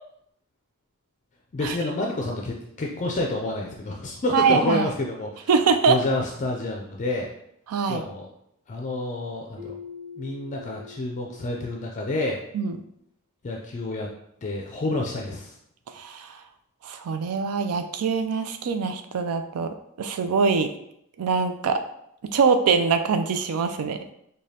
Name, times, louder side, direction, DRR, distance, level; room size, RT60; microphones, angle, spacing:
voice 1, 1.5-5.5 5.9-7.3 7.9-8.3 8.7-9.8 10.2-12.4 13.4-14.1 14.4-15.6, left 2 dB, 35° left, 0 dB, 0.4 m, -29 dB
voice 2, 4.3-4.9 5.5-6.0 7.7-8.0 12.5-12.8 15.9-16.4 16.8-20.7 21.2-21.8 22.3-24.0, right 5 dB, 80° right, 8 dB, 0.4 m, -23 dB
Keyboard (musical), 9.6-12.4, left 6 dB, 20° right, 1.1 m, -44 dB
4.9 x 2.2 x 2.8 m, 0.74 s
head